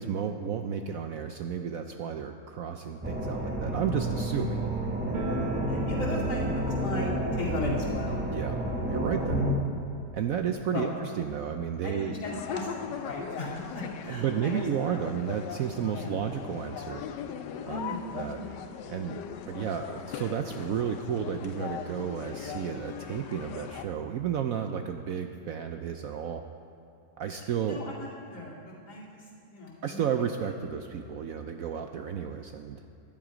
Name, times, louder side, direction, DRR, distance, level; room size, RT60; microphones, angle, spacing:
voice 1, 0.0-4.7 8.3-9.4 10.1-10.9 11.2-12.1 14.1-17.0 17.6-17.8 18.2-18.4 18.9-19.2 19.5-26.4 27.2-27.8 29.8-32.8, right 8 dB, 70° right, 6 dB, 0.8 m, -32 dB
sound 1, 3.0-9.5, equal, 10° right, 0.8 m, -30 dB
sound 2, 5.1-11.8 12.1-12.2 12.4-12.5 13.3-13.4 13.7-14.9, right 4 dB, 50° right, 1.5 m, -42 dB
voice 2, 5.7-8.2 10.7-10.9 11.8-14.7 15.9-16.2 17.7-18.6 27.4-30.1, left 1 dB, 65° left, -5 dB, 3.1 m, -37 dB
sound 3, 12.2-23.9, left 8 dB, 80° left, 1.3 m, -39 dB
14.5 x 11.0 x 5.0 m, 2.5 s
omnidirectional pair, 1.9 m